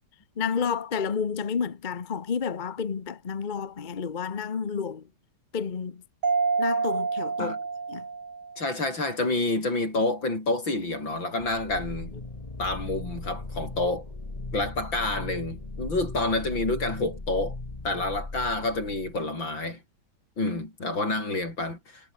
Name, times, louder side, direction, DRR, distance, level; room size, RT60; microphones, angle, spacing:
voice 1, 0.4-5.0 5.5-6.0 6.6-7.5 7.9-8.0, left 6 dB, 35° left, 0.7 m, -30 dB
Mallet percussion, 6.2-8.8, right 4 dB, 90° right, 4.5 m, -28 dB
voice 2, 8.6-12.1 12.6-14.1 14.5-17.6 17.8-19.8 20.4-22.1, left 2 dB, 65° left, 8.4 m, -28 dB
sound 1, 11.4-19.2, left 2 dB, 20° left, 1.9 m, -38 dB
omnidirectional pair, 2.2 m